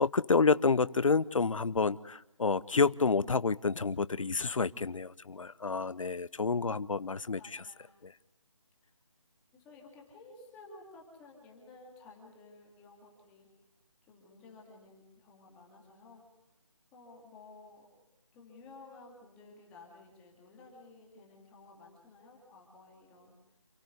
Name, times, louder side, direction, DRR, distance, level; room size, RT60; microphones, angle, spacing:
voice 1, 0.0-7.6 8.0-8.1, left 4 dB, 85° left, 0.8 m, -29 dB
voice 2, 7.1-7.9 9.5-13.5 14.1-16.2 16.9-17.9 18.3-23.3, left 3 dB, 5° left, 2.2 m, -54 dB
28.0 x 15.0 x 9.4 m
figure-of-eight pair, 175°, 17 cm